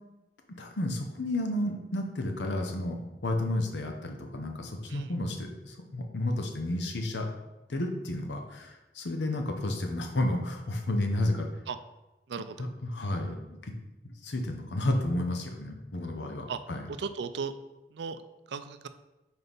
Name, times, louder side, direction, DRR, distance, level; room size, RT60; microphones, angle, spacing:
voice 1, 0.5-7.3 7.7-11.5 12.6-13.7 14.0-16.9, left 1 dB, 85° left, 4 dB, 0.8 m, -32 dB
voice 2, 12.3-12.7 16.5-16.6 17.0-17.5 17.9-18.2 18.5-18.9, right 5 dB, 80° right, 11 dB, 0.4 m, -36 dB
5.4 x 4.5 x 4.0 m, 1.0 s
head